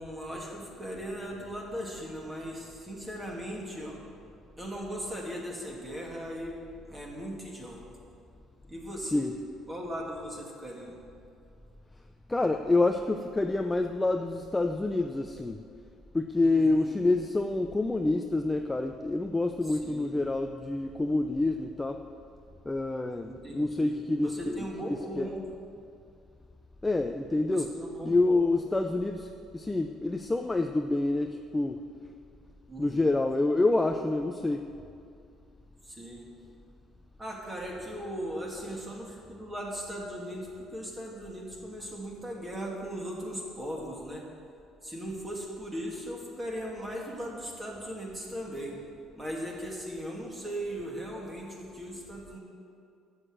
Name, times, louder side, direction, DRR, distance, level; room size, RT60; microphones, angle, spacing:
voice 1, 0.0-4.0 4.6-6.6 6.8-7.8 8.7-9.3 9.7-11.0 16.4-16.9 19.7-20.1 23.2-25.4 27.5-28.4 32.7-33.1 35.8-36.3 37.2-44.2 44.8-48.8 49.2-52.4, equal, 10° right, -1 dB, 2.2 m, -38 dB
voice 2, 12.3-15.6 16.1-22.0 22.7-25.3 26.8-27.7 28.0-31.8 32.8-34.7 38.7-38.8, left 2 dB, 10° left, 5 dB, 0.4 m, -27 dB
12.5 x 8.1 x 7.7 m, 2.5 s
cardioid pair, 160°, 0 cm